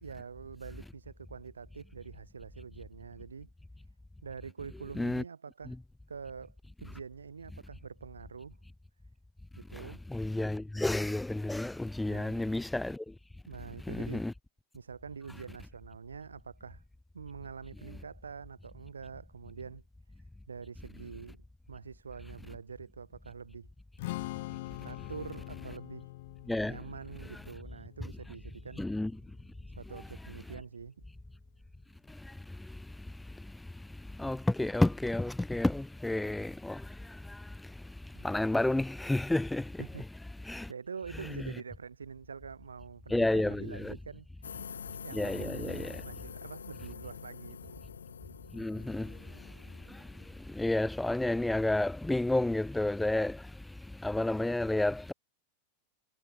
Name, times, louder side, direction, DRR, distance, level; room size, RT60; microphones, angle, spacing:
voice 1, 0.0-3.5 4.2-5.8 6.1-6.6 6.8-8.6 9.6-10.0 12.1-12.5 13.5-14.3 14.7-16.8 17.1-19.8 20.5-23.7 24.8-26.1 26.6-28.9 29.8-31.0 38.2-38.3 39.8-40.1 40.4-44.3 45.0-47.8, right 6 dB, 75° right, 3.7 m, -45 dB
voice 2, 10.1-13.0 13.9-14.3 26.5-26.8 28.8-29.1 34.2-36.8 38.2-39.7 40.5-40.7 43.1-43.9 45.1-46.0 48.5-49.1 50.5-53.4 54.0-55.1, left 2 dB, 5° left, 2.5 m, -30 dB
Strum, 24.0-30.3, left 19 dB, 50° left, 5.3 m, -44 dB
sound 1, 44.4-50.5, left 7 dB, 70° left, 4.0 m, -46 dB
figure-of-eight pair, 90°, 0 cm